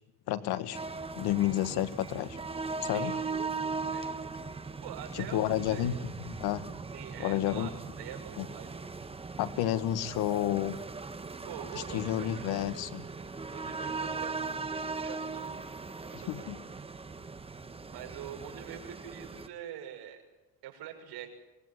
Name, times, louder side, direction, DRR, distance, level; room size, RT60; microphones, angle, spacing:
voice 1, 0.3-0.8 1.2-2.4 2.8-3.2 5.1-6.6 7.2-7.7 8.4-8.5 9.4-10.8 11.7-13.1 16.1-16.6, left 12 dB, 80° left, 12 dB, 1.7 m, -31 dB
sound 1, 0.7-19.5, right 4 dB, 15° right, 1.2 m, -39 dB
voice 2, 2.9-3.4 3.8-4.1 4.8-6.0 6.9-8.8 11.5-12.4 13.5-15.5 16.0-16.5 17.9-20.2 20.6-21.3, right 10 dB, 75° right, 4 dB, 6.3 m, -45 dB
25.5 x 20.5 x 9.7 m, 1.0 s
cardioid pair, 125°, 38 cm